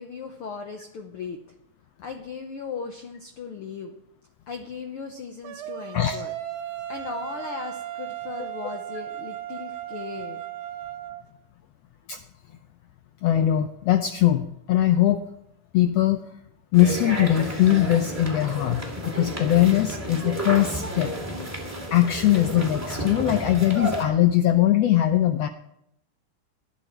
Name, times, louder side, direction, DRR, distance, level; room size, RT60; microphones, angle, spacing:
voice 1, 0.0-1.4 2.0-3.9 4.5-6.3 6.9-10.4, left 5 dB, 70° left, 4 dB, 1.3 m, -37 dB
sound 1, 5.4-11.2, right 12 dB, 70° right, 2.2 m, -36 dB
voice 2, 13.2-15.2 15.7-16.2 16.7-21.1 21.9-25.5, left 12 dB, 85° left, 8 dB, 1.4 m, -21 dB
sound 2, 16.7-24.0, right 1 dB, 5° right, 2.1 m, -32 dB
19.0 x 11.5 x 4.5 m, 0.80 s
omnidirectional pair, 3.7 m